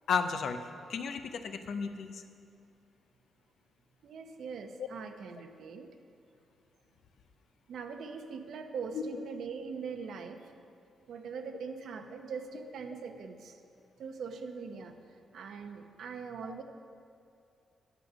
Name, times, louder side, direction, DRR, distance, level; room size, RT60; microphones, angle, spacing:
voice 1, 0.1-0.6 0.9-2.2 4.8-4.9 8.9-9.0 16.4-16.5, left 6 dB, 65° left, 8 dB, 0.6 m, -33 dB
voice 2, 4.0-5.9 7.7-10.5 11.1-13.6 14.0-16.6, right 5 dB, 75° right, 6 dB, 0.8 m, -42 dB
8.9 x 8.3 x 6.2 m, 2.6 s
cardioid pair, 125°, 0 cm